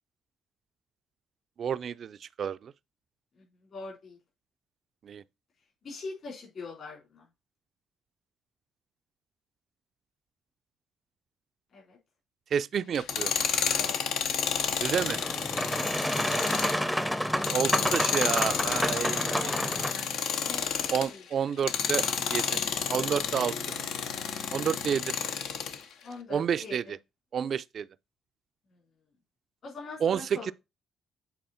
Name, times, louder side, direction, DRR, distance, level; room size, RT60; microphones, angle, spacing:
voice 1, 1.6-2.7 5.0-5.2 12.5-13.3 14.8-15.2 17.5-19.5 20.9-22.6 22.9-23.5 24.5-25.1 26.3-27.0 27.3-27.9 30.0-30.5, right 8 dB, 55° right, 0.3 m, -30 dB
voice 2, 3.7-4.2 5.8-7.3 11.7-12.0 13.7-14.0 19.2-20.7 21.1-21.2 26.0-26.8 28.7-28.8 29.6-30.5, left 3 dB, 60° left, 3.9 m, -43 dB
Tools, 12.9-21.1 21.6-25.8, left 7 dB, 90° left, 0.8 m, -30 dB
Boat Water vehicle, 14.9-19.9, equal, 5° left, 0.5 m, -30 dB
7.9 x 4.2 x 4.3 m
cardioid pair, 90°, 0 cm